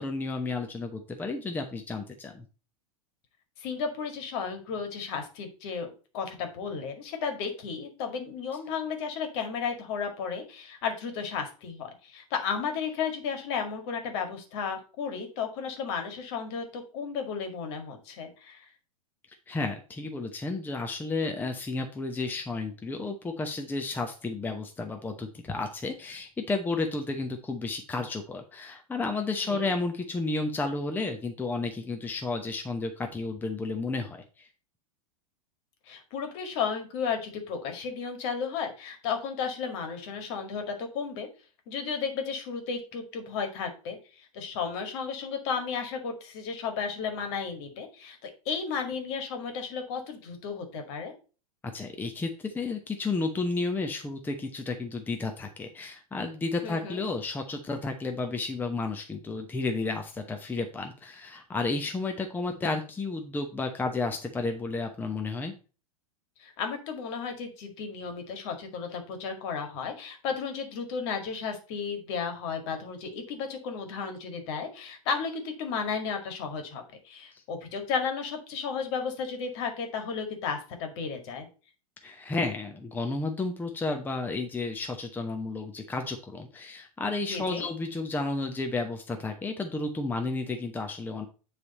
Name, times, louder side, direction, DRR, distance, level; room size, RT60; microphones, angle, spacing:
voice 1, 0.0-2.4 19.5-34.5 51.7-65.5 82.0-91.3, left 3 dB, 10° left, 4 dB, 0.8 m, -32 dB
voice 2, 3.6-18.6 29.4-29.6 35.9-41.3 41.7-51.1 56.6-57.0 66.4-81.5 87.3-87.7, left 6 dB, 50° left, 5 dB, 2.0 m, -34 dB
9.6 x 3.4 x 4.2 m, 0.35 s
figure-of-eight pair, 95°, 18 cm